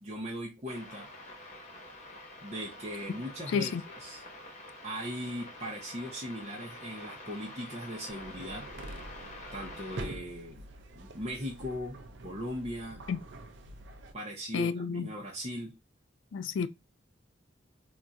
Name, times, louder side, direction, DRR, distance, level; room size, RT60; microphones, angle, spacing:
voice 1, 0.0-1.1 2.4-4.2 4.8-8.6 9.5-10.6 10.9-12.0 12.2-13.0 14.1-15.7, equal, 35° right, 0.7 m, -39 dB
sound 1, 0.7-10.0, left 1 dB, 35° left, 0.9 m, -47 dB
sound 2, 8.1-14.1, right 2 dB, 70° right, 0.5 m, -45 dB
voice 2, 14.5-15.1 16.3-16.7, left 6 dB, 75° left, 0.3 m, -30 dB
2.4 x 2.3 x 4.0 m
head